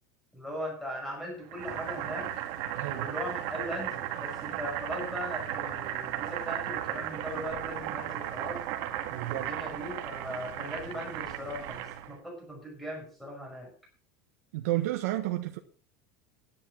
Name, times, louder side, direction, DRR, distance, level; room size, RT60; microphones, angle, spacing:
voice 1, 0.3-2.3 2.9-8.6 9.3-13.7, equal, ahead, 5.8 m, -39 dB
Boiling, 1.5-12.2, right 11 dB, 50° right, 1.9 m, -35 dB
voice 2, 2.7-3.1 9.1-9.5 14.5-15.6, right 16 dB, 80° right, 1.5 m, -31 dB
11.0 x 11.0 x 6.1 m
supercardioid pair, 165°, 8 cm